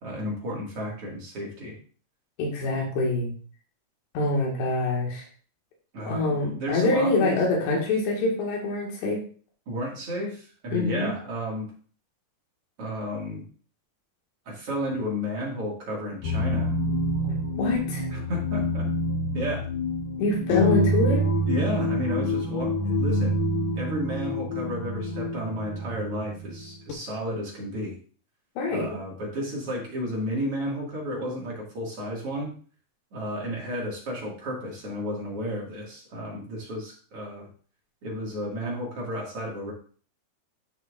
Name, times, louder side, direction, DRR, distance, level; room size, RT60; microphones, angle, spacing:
voice 1, 0.0-1.8 5.9-7.4 9.7-11.7 12.8-13.4 14.5-16.7 18.1-18.9 19.3-19.7 21.5-23.3 23.7-28.0 28.7-32.5 33.1-37.5 38.0-39.7, equal, 45° right, -3 dB, 2.4 m, -32 dB
voice 2, 2.4-3.3 4.1-5.3 6.0-9.2 10.7-11.1 17.2-18.1 20.2-21.3 28.6-29.0, left 2 dB, 85° left, -2 dB, 3.9 m, -25 dB
sound 1, 16.2-26.9, left 1 dB, 70° left, 2.7 m, -27 dB
11.0 x 6.1 x 2.5 m, 0.43 s
omnidirectional pair, 4.8 m